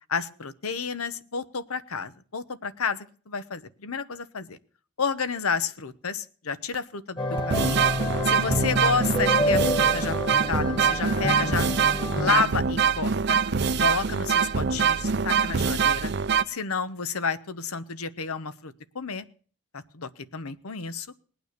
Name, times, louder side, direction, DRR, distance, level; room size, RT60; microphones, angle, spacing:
voice 1, 0.1-4.6 5.0-7.8 8.2-11.7 12.1-13.4 13.8-16.1 16.5-19.3 19.7-21.1, left 5 dB, 90° left, 14 dB, 1.0 m, -31 dB
sound 1, 6.7-6.8 7.4-16.4, right 6 dB, 50° right, 0.6 m, -24 dB
sound 2, 7.2-12.4, left 1 dB, 20° left, 1.6 m, -28 dB
19.5 x 9.1 x 6.7 m, 0.44 s
head